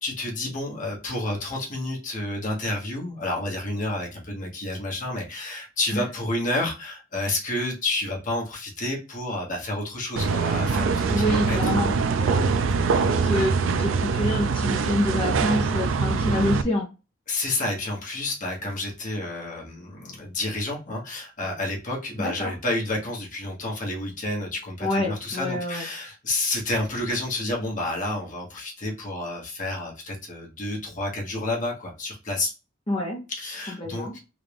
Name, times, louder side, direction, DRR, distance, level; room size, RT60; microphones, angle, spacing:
voice 1, 0.0-11.9 17.3-32.5 33.3-34.1, left 2 dB, 45° left, -2 dB, 1.2 m, -30 dB
sound 1, 10.2-16.6, right 4 dB, 85° right, 0.4 m, -23 dB
voice 2, 11.1-12.5 13.0-16.9 22.2-22.5 24.8-25.9 32.9-33.2 33.8-34.2, left 1 dB, 30° left, -1 dB, 0.8 m, -27 dB
3.6 x 2.5 x 3.4 m, 0.29 s
head